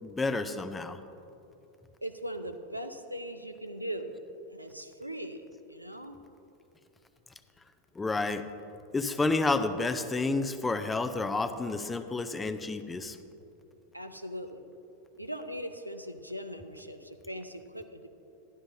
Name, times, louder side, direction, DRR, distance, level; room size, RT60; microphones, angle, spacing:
voice 1, 0.0-1.0 8.0-8.4 8.9-13.2, left 3 dB, 10° left, 10 dB, 0.5 m, -30 dB
voice 2, 2.0-4.1 4.5-5.4 5.7-6.2 13.9-14.6 15.2-18.1, equal, 90° right, 8 dB, 0.5 m, -39 dB
12.5 x 11.5 x 2.7 m, 2.9 s
figure-of-eight pair, 90°, 0 cm